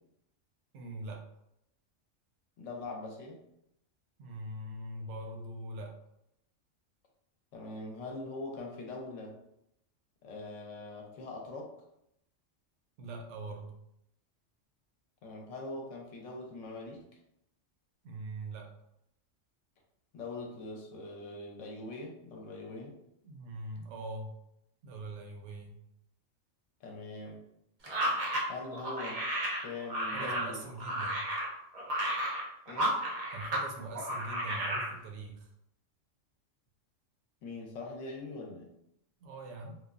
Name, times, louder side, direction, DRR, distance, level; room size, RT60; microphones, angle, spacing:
voice 1, 0.7-1.2 4.2-5.9 13.0-13.8 18.0-18.7 23.2-24.3 24.8-25.7 30.1-31.2 33.3-35.5 39.2-39.8, right 2 dB, 70° right, 2 dB, 0.9 m, -42 dB
voice 2, 2.6-3.4 7.5-9.4 10.2-11.7 15.2-17.1 20.1-23.0 26.8-27.4 28.5-29.2 29.6-30.6 32.7-33.0 37.4-38.7, left 2 dB, 75° left, 0 dB, 1.0 m, -42 dB
sound 1, 27.8-33.7 33.9-34.9, right 1 dB, 45° right, 0.5 m, -33 dB
3.1 x 2.0 x 2.3 m, 0.79 s
omnidirectional pair, 1.3 m